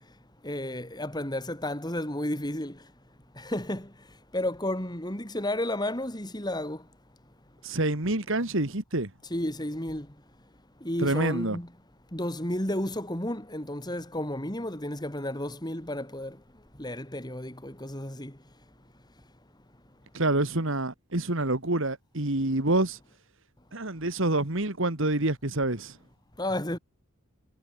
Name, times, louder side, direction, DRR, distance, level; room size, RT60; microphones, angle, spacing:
voice 1, 0.4-2.8 3.4-3.9 4.3-6.8 9.3-10.1 10.8-11.7 12.1-16.4 16.8-18.3 26.4-26.8, left 1 dB, 20° left, 4.6 m, -32 dB
voice 2, 7.6-9.1 11.0-11.6 20.1-23.0 23.7-26.0, right 2 dB, 60° right, 2.3 m, -27 dB
head